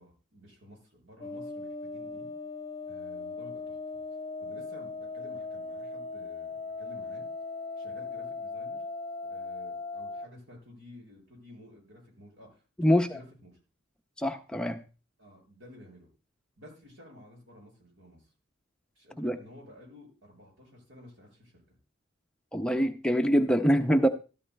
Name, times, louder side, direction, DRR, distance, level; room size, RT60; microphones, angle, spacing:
voice 1, 0.0-2.3 2.8-3.8 4.4-7.3 7.8-8.8 9.3-13.6 15.2-16.1 16.6-18.3 19.0-21.8, left 1 dB, 75° right, 7.0 m, -52 dB
sound 1, 1.2-10.3, left 3 dB, 30° left, 0.8 m, -38 dB
voice 2, 14.2-14.8 19.2-19.4 22.5-24.1, equal, 5° left, 0.5 m, -24 dB
13.0 x 12.0 x 2.2 m
head